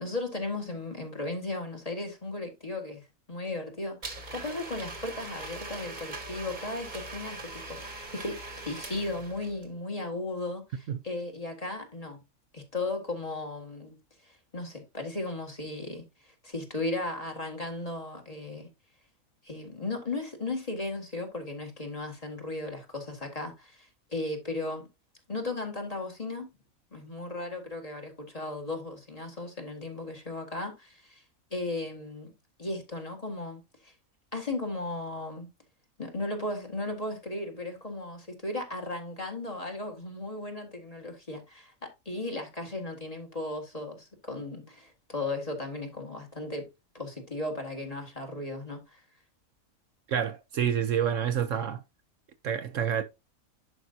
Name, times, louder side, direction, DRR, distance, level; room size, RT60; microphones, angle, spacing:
voice 1, 0.0-12.2 12.5-14.0 14.2-18.7 19.4-24.9 25.3-26.5 26.9-31.2 31.5-32.3 32.6-33.9 34.3-35.5 36.0-46.7 46.9-49.0, left 2 dB, 25° left, 1.8 m, -36 dB
Domestic sounds home sounds, 4.0-9.7, right 2 dB, 35° right, 1.3 m, -41 dB
voice 2, 50.1-51.8 52.4-53.0, right 9 dB, 65° right, 1.1 m, -28 dB
11.0 x 5.3 x 2.7 m
omnidirectional pair, 1.5 m